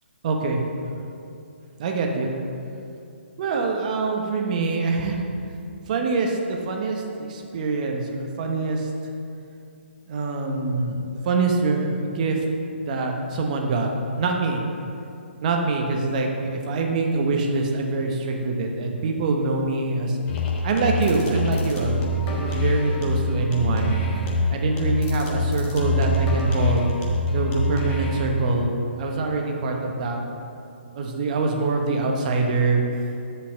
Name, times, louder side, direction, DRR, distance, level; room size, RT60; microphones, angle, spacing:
voice 1, 0.2-1.0 1.8-2.3 3.4-5.2 5.9-7.0 7.3-8.9 10.1-12.4 12.8-13.9 14.2-14.6 15.4-20.2 20.6-24.0 24.5-26.9 27.3-30.2 30.9-32.8, right 3 dB, 40° right, 2 dB, 1.0 m, -24 dB
sound 1, 20.3-28.3, left 1 dB, 25° left, 1.4 m, -24 dB
7.2 x 5.2 x 6.2 m, 2.6 s
figure-of-eight pair, 135°, 6 cm